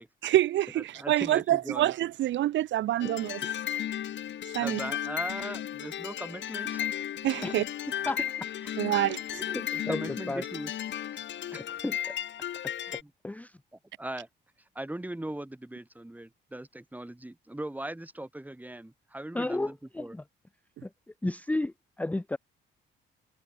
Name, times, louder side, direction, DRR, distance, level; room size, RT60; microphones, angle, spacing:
voice 1, 0.2-3.4 4.5-4.8 7.2-7.6 8.8-9.4, right 13 dB, 70° right, 0.6 m, -26 dB
voice 2, 0.8-1.9 4.6-6.9 7.5-7.6 8.6-8.7 9.7-10.7 11.1-11.2 11.5-11.6 13.0-13.1 14.0-14.3 14.7-20.1, right 1 dB, 10° right, 2.9 m, -39 dB
sound 1, 3.0-13.0, left 11 dB, 65° left, 1.9 m, -35 dB
voice 3, 9.3-10.4 11.8-12.2 13.2-13.6 19.3-20.2 20.8-20.9 21.2-22.4, left 2 dB, 5° left, 0.6 m, -33 dB
cardioid pair, 90°, 20 cm